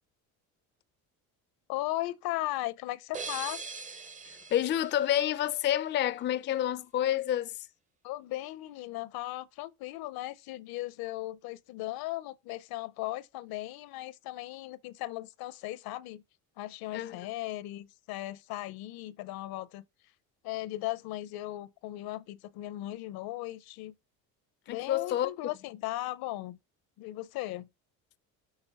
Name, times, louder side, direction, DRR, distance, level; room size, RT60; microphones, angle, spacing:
voice 1, 1.7-3.6 8.0-16.2 16.6-19.8 20.4-23.9 24.7-26.6 27.0-27.7, left 16 dB, 70° left, 0.6 m, -37 dB
sound 1, 3.1-5.9, right 4 dB, 20° right, 0.6 m, -42 dB
voice 2, 4.5-7.7 16.9-17.2 24.7-25.3, left 11 dB, 30° left, 0.4 m, -29 dB
6.6 x 3.7 x 4.2 m
supercardioid pair, 90°, 37 cm